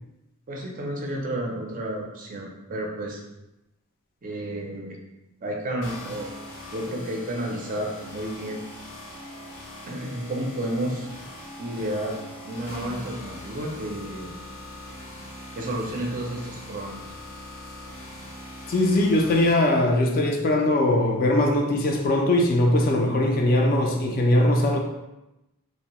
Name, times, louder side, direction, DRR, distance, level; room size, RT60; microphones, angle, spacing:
voice 1, 0.5-3.2 4.2-5.0 5.4-6.3 6.7-8.6 9.9-11.1 11.6-12.2 12.4-14.3 15.6-17.0, right 1 dB, 35° right, 0 dB, 0.4 m, -31 dB
sound 1, 5.8-19.5, left 1 dB, 85° left, 0.8 m, -41 dB
voice 2, 18.7-24.8, left 1 dB, 40° left, 1 dB, 0.4 m, -21 dB
2.6 x 2.0 x 2.9 m, 0.94 s
head